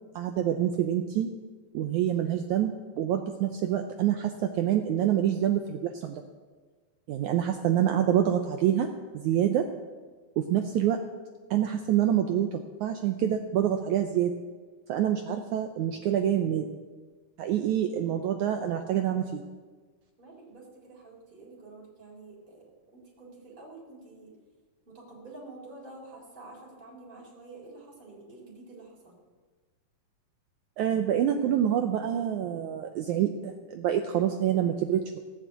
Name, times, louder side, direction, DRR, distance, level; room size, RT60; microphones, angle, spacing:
voice 1, 0.1-1.3 1.7-6.2 7.1-8.9 9.2-9.6 10.4-11.0 11.5-12.5 12.8-14.3 14.9-16.6 17.4-19.4 30.8-35.2, right 10 dB, 80° right, 5 dB, 1.7 m, -26 dB
voice 2, 7.2-7.5 20.2-22.6 22.9-24.3 24.9-29.2, right 2 dB, 15° right, -4 dB, 3.5 m, -48 dB
17.5 x 7.3 x 8.1 m, 1.4 s
omnidirectional pair, 4.3 m